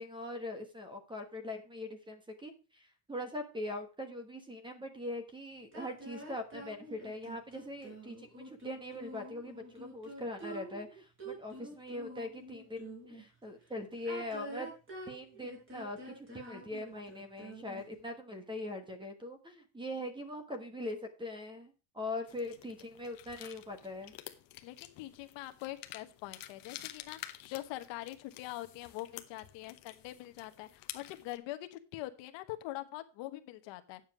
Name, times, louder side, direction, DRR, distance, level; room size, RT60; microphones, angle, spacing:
voice 1, 0.0-14.7 15.1-24.1, left 1 dB, 10° right, 8 dB, 1.2 m, -42 dB
sound 1, 5.7-13.2 13.9-18.0, right 1 dB, 25° right, 5.1 m, -47 dB
sound 2, 22.3-31.4, left 14 dB, 45° left, 1.0 m, -50 dB
voice 2, 24.6-34.0, left 16 dB, 60° left, 10 dB, 1.2 m, -43 dB
9.2 x 7.3 x 4.7 m, 0.32 s
cardioid pair, 170°, 48 cm